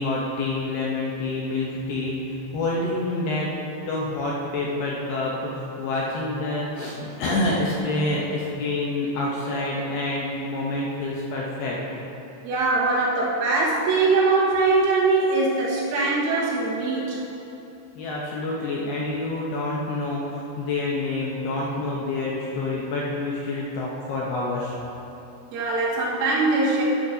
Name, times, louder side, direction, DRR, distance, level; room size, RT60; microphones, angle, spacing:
voice 1, 0.0-3.5 3.9-12.0 18.0-24.8, left 2 dB, 75° left, -4 dB, 2.4 m, -27 dB
voice 2, 12.4-17.2 25.5-26.8, right 3 dB, 85° right, -5 dB, 4.0 m, -22 dB
11.5 x 11.5 x 2.7 m, 2.9 s
omnidirectional pair, 5.5 m